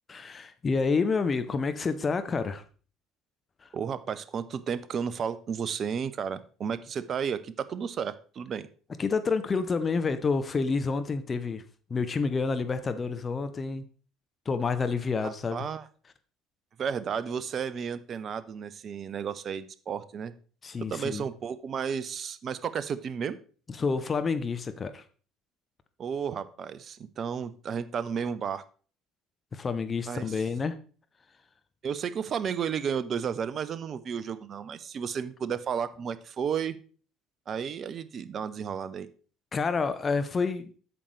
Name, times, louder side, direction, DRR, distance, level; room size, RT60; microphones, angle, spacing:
voice 1, 0.1-2.6 3.6-3.7 9.0-11.6 11.9-13.8 14.5-15.7 20.6-21.2 23.8-25.0 29.5-30.7 39.5-40.7, left 4 dB, 30° left, 10 dB, 0.7 m, -28 dB
voice 2, 3.7-8.7 15.2-15.9 16.8-20.3 20.8-23.4 26.0-28.6 30.1-30.4 31.8-36.8 37.5-39.1, right 7 dB, 40° right, 14 dB, 0.7 m, -33 dB
8.5 x 7.1 x 3.3 m, 0.40 s
figure-of-eight pair, 60°, 0 cm